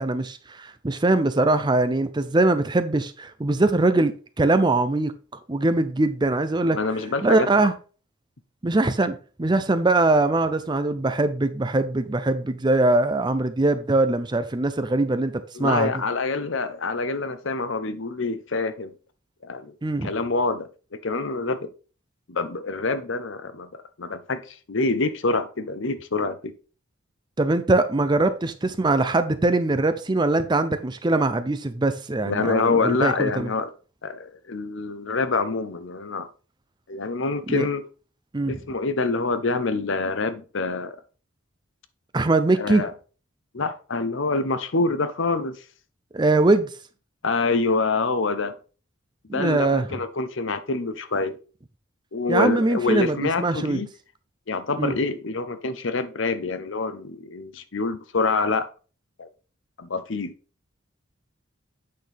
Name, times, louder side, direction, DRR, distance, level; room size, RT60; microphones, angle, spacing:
voice 1, 0.0-5.2 5.5-6.8 7.2-7.7 8.6-15.9 19.8-20.1 27.4-33.5 37.5-37.7 38.3-38.5 42.1-42.8 46.1-46.7 49.3-49.9 52.3-53.8 54.8-54.9, right 2 dB, 20° right, 0.5 m, -22 dB
voice 2, 6.7-7.7 15.5-18.9 19.4-19.7 20.0-21.7 22.3-23.7 24.0-26.5 32.2-33.7 34.0-36.3 36.9-37.9 38.5-40.9 42.6-42.9 43.5-45.6 47.2-48.5 49.3-51.4 52.1-53.9 54.5-58.7 59.2-59.3 59.8-60.3, left 3 dB, 60° left, 0.8 m, -26 dB
8.6 x 6.0 x 3.4 m
head